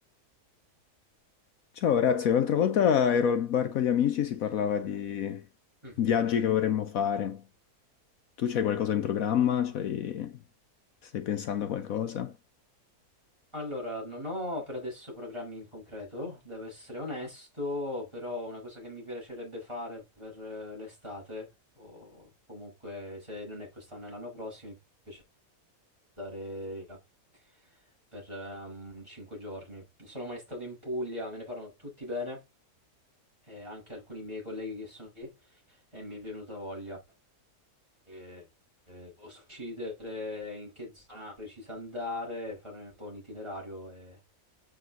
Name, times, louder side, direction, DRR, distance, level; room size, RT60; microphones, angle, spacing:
voice 1, 1.8-5.4 6.0-7.4 8.4-10.4 11.0-12.3, left 8 dB, 70° left, 1.1 m, -27 dB
voice 2, 13.5-21.5 21.8-24.8 25.1-25.2 26.2-27.0 28.1-32.4 33.5-37.0 38.1-38.5 38.9-44.2, left 1 dB, 20° right, 5.9 m, -39 dB
7.7 x 5.0 x 3.7 m
omnidirectional pair, 1.6 m